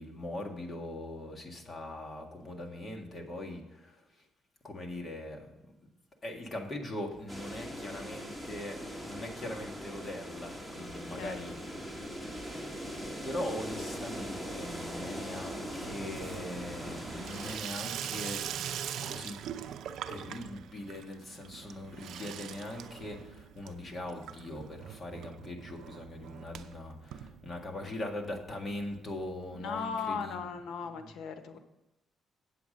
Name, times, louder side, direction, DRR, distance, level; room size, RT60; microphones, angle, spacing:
voice 1, 0.0-4.0 4.6-5.5 5.8-5.9 6.2-11.5 12.8-18.6 19.0-19.4 20.1-30.5 30.8-31.1, left 1 dB, 30° left, 1 dB, 1.8 m, -41 dB
sound 1, 7.3-17.6, equal, 5° left, 2.0 m, -41 dB
Water tap faucet / Sink (filling or washing), 10.8-11.6 11.9-12.4 12.7-28.0 28.3-28.4 28.6-28.7 28.9-29.0 30.1-30.2, right 9 dB, 75° right, 0.5 m, -43 dB
voice 2, 29.5-31.6, left 6 dB, 75° left, 8 dB, 1.0 m, -37 dB
8.4 x 8.0 x 5.2 m, 0.92 s
cardioid pair, 90°, 0 cm